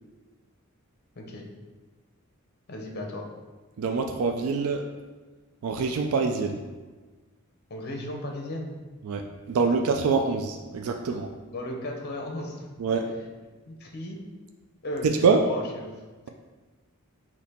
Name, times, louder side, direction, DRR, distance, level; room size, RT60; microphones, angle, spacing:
voice 1, 2.7-3.2 7.7-8.7 9.6-9.7 11.5-13.0 13.7-14.2 14.8-15.9, left 1 dB, 45° left, 1 dB, 0.7 m, -35 dB
voice 2, 3.8-4.9 5.6-6.6 9.0-11.3 12.8-13.1 15.2-15.4, right 4 dB, 75° right, 4 dB, 0.4 m, -25 dB
4.2 x 2.9 x 4.2 m, 1.3 s
head